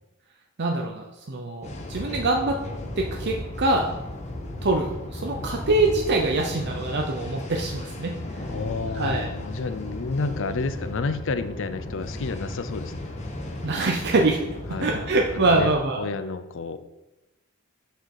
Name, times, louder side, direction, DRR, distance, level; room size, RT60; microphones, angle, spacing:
voice 1, 0.6-2.6 3.0-3.9 4.6-8.1 8.9-9.3 13.6-14.4 14.8-16.0, right 2 dB, 50° right, 1 dB, 0.7 m, -24 dB
sound 1, 1.6-15.7, left 1 dB, 30° left, 1.1 m, -35 dB
voice 2, 8.5-13.1 14.7-16.8, left 4 dB, 60° left, 12 dB, 0.5 m, -30 dB
6.7 x 6.4 x 4.8 m, 0.99 s
head